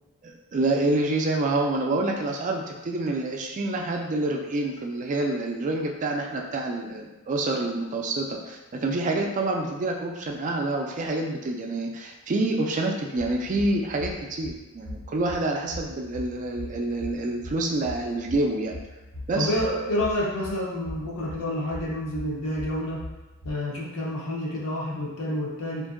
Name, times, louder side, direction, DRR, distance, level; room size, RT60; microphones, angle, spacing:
voice 1, 0.2-18.7 19.3-19.5, right 2 dB, 35° right, 1 dB, 0.3 m, -27 dB
sound 1, 13.2-23.5, left 1 dB, 85° left, 1.3 m, -41 dB
voice 2, 19.4-23.0 23.4-25.9, left 1 dB, 70° left, -4 dB, 0.7 m, -29 dB
2.7 x 2.5 x 2.5 m, 1.1 s
head